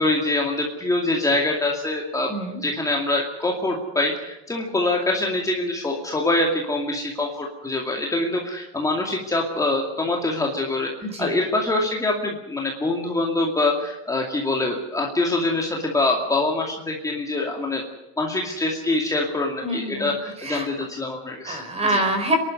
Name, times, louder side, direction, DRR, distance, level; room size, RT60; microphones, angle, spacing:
voice 1, 0.0-2.3 2.6-10.9 11.2-17.8 18.2-21.6 21.9-22.0, left 2 dB, 10° left, 0 dB, 2.4 m, -24 dB
voice 2, 2.3-2.6 11.1-11.4 19.6-20.1 20.4-20.7 21.5-22.4, right 1 dB, 20° right, 6 dB, 4.5 m, -25 dB
27.5 x 12.0 x 9.6 m, 1.0 s
cardioid pair, 150°, 31 cm